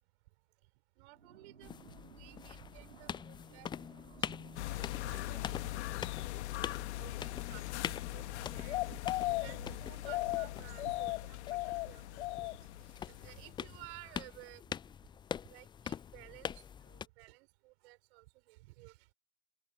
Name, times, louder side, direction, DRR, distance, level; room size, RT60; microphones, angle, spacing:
voice 1, 1.0-3.7 4.0-14.6 15.5-19.1, right 23 dB, 55° right, 5.3 m, -56 dB
sound 1, 1.1-12.1, right 6 dB, 80° right, 3.7 m, -57 dB
sound 2, 1.6-17.1, left 8 dB, 15° left, 0.4 m, -45 dB
sound 3, 4.6-13.8 14.1-14.2, left 18 dB, 60° left, 1.8 m, -38 dB
figure-of-eight pair, 75°, 38 cm